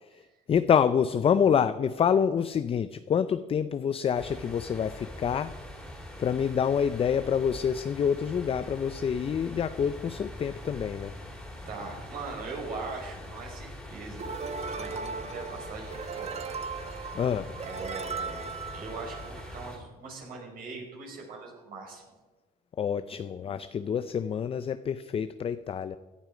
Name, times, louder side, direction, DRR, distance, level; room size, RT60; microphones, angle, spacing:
voice 1, 0.1-5.6 6.2-11.1 17.1-17.5 22.8-26.0, left 7 dB, 35° left, 12 dB, 0.5 m, -27 dB
sound 1, 4.1-19.8, left 1 dB, 5° left, 3.6 m, -43 dB
voice 2, 11.7-14.4 14.7-16.5 17.6-22.1, right 3 dB, 60° right, -1 dB, 5.7 m, -41 dB
sound 2, 14.2-19.7, right 5 dB, 40° right, 1.1 m, -38 dB
17.0 x 11.5 x 5.1 m, 1.2 s
cardioid pair, 110°, 17 cm